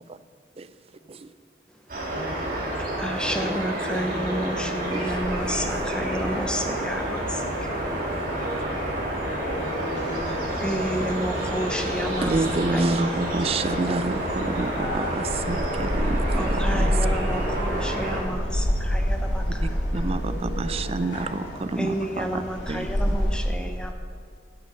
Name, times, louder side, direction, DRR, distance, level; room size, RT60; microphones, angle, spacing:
sound 1, 1.9-18.2, right 1 dB, 50° right, 2.4 m, -29 dB
voice 1, 2.1-2.5 3.2-4.9 7.2-7.5 9.4-11.4 16.8-17.1 17.4-17.5 20.1-20.7 21.3-21.5, equal, 40° left, -5 dB, 3.3 m, -38 dB
voice 2, 2.8-7.9 10.6-12.5 12.7-12.8 16.3-19.8 21.7-23.9, equal, 5° left, 5 dB, 0.8 m, -31 dB
sound 2, 5.0-23.4, equal, 85° left, 2.5 m, -30 dB
voice 3, 12.2-17.0 19.9-22.4 22.7-23.1, right 3 dB, 35° right, 12 dB, 0.4 m, -28 dB
9.7 x 9.3 x 6.5 m, 2.1 s
head